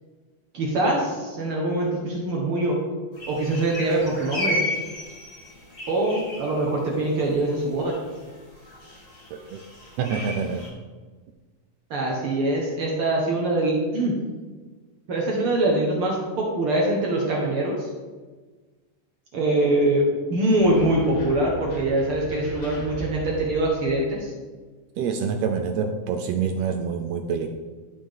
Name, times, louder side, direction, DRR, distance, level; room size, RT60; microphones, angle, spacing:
voice 1, 0.5-2.8 3.3-4.6 5.9-7.9 11.9-14.2 15.1-17.9 19.3-24.3, right 1 dB, 55° right, -2 dB, 1.8 m, -23 dB
sound 1, 3.2-10.7, left 1 dB, 30° left, 1.8 m, -34 dB
voice 2, 9.3-9.6 10.0-10.7 25.0-27.5, right 6 dB, 80° right, 5 dB, 1.5 m, -26 dB
sound 2, 20.6-24.2, left 1 dB, 85° left, 2.9 m, -38 dB
12.5 x 5.2 x 3.7 m, 1.4 s
omnidirectional pair, 3.5 m